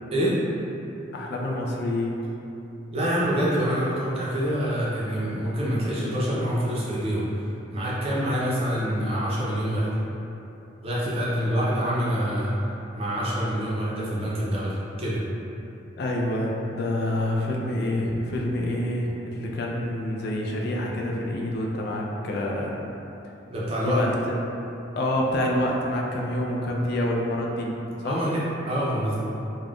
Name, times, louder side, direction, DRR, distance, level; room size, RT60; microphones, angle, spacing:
voice 1, 1.1-2.2 16.0-22.8 23.8-24.3 25.0-27.7 28.0-28.2, left 1 dB, 55° left, -1 dB, 0.4 m, -27 dB
voice 2, 2.9-7.3 7.7-10.0 10.8-12.5 12.9-15.2 23.5-24.0 28.0-29.2, equal, 30° right, -7 dB, 0.5 m, -26 dB
2.4 x 2.1 x 3.4 m, 2.9 s
head